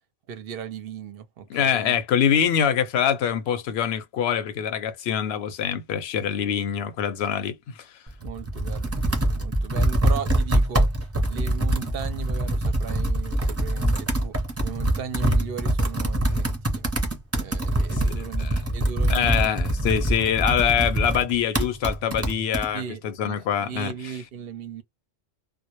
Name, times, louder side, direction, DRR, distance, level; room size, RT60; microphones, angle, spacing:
voice 1, 0.3-2.0 5.3-5.4 8.2-10.9 11.3-14.4 14.6-16.9 17.3-19.5 20.2-20.3 22.7-24.8, right 8 dB, 65° right, 0.7 m, -37 dB
voice 2, 1.5-7.6 16.3-16.4 17.9-18.1 18.4-18.5 19.1-23.9, left 8 dB, 70° left, 0.8 m, -24 dB
Computer keyboard, 8.1-22.7, right 1 dB, 15° right, 0.5 m, -24 dB
2.1 x 2.1 x 2.8 m
omnidirectional pair, 1.2 m